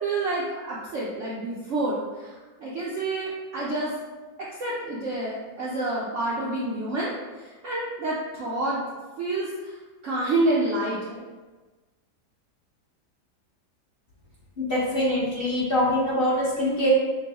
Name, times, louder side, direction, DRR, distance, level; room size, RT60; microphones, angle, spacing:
voice 1, 0.0-3.9 4.4-8.8 9.2-9.7 10.0-11.2, right 2 dB, 65° right, -6 dB, 0.7 m, -28 dB
voice 2, 14.6-16.9, left 1 dB, 40° left, -8 dB, 0.9 m, -24 dB
6.0 x 2.2 x 2.8 m, 1.3 s
omnidirectional pair, 1.9 m